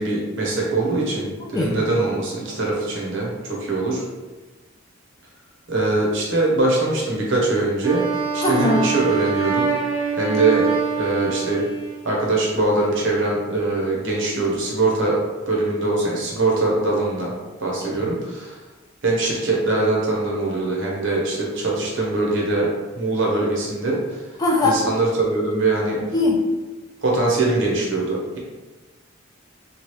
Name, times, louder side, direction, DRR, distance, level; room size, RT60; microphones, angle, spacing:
voice 1, 0.0-3.3 3.6-4.0 5.7-9.6 10.2-10.7 11.0-11.6 12.0-15.2 15.5-17.3 17.6-18.6 19.0-22.7 22.9-24.0 24.6-26.0 27.0-28.4, right 2 dB, 60° right, -3 dB, 0.8 m, -22 dB
Wind instrument woodwind instrument, 7.8-12.1, right 5 dB, 90° right, 0.7 m, -24 dB
voice 2, 8.4-8.8 17.8-18.0 24.4-24.7 26.1-26.4, left 2 dB, 20° left, -2 dB, 0.4 m, -20 dB
3.0 x 2.3 x 3.0 m, 1.2 s
head